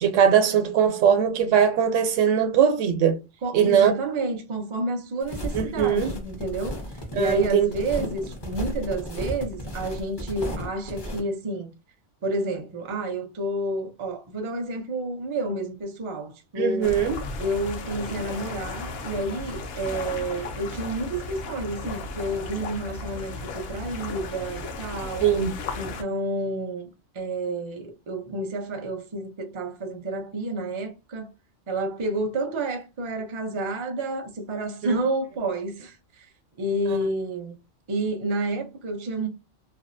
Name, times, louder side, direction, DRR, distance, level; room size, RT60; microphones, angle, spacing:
voice 1, 0.0-3.2 3.5-4.3 5.5-6.1 7.2-7.7 16.6-17.2 25.2-25.5 36.9-37.0, right 8 dB, 85° right, 0.9 m, -21 dB
voice 2, 3.4-6.8 7.1-11.7 12.2-17.0 17.4-25.3 25.7-26.9 27.1-31.3 31.7-36.3 36.6-37.6 37.9-39.3, right 2 dB, 40° right, 0.4 m, -30 dB
sound 1, 5.2-11.2, equal, 30° left, 0.4 m, -34 dB
sound 2, 16.8-26.0, left 3 dB, 65° left, 0.7 m, -35 dB
2.6 x 2.3 x 2.5 m
omnidirectional pair, 1.2 m